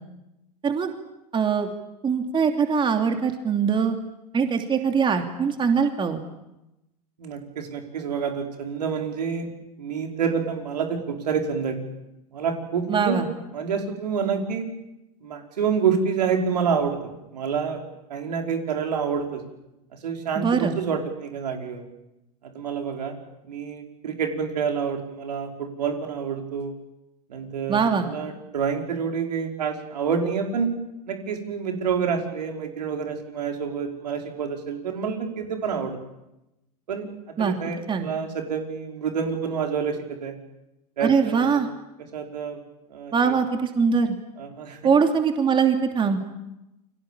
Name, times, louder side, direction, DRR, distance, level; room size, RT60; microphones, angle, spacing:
voice 1, 1.3-1.7 2.0-4.0 4.3-6.2 12.9-13.3 20.4-20.7 27.7-28.1 37.4-37.6 37.9-38.1 41.0-41.7 43.1-44.1 44.8-46.2, right 6 dB, 25° right, 5 dB, 3.0 m, -22 dB
voice 2, 7.2-9.5 9.8-11.8 12.3-13.2 13.5-14.7 15.2-17.8 18.1-19.4 19.9-21.9 22.4-23.2 23.4-26.7 27.3-30.7 31.1-36.0 36.9-37.1 37.4-40.3 41.0-41.6 42.1-42.6 42.9-43.3 44.4-44.8, right 6 dB, 80° right, 3 dB, 5.2 m, -28 dB
29.5 x 24.0 x 7.4 m, 0.92 s
hypercardioid pair, 100°, 21 cm